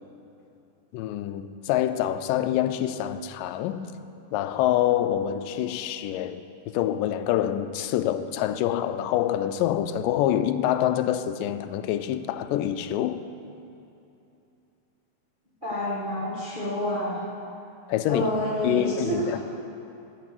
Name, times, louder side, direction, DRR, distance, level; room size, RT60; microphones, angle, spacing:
voice 1, 0.9-3.9 4.3-6.4 6.7-13.2 17.9-18.3 18.6-19.4, left 11 dB, 90° left, 2.2 m, -26 dB
voice 2, 15.6-17.2 18.1-19.4, equal, 25° right, 1.1 m, -28 dB
14.5 x 6.0 x 7.8 m
omnidirectional pair, 3.8 m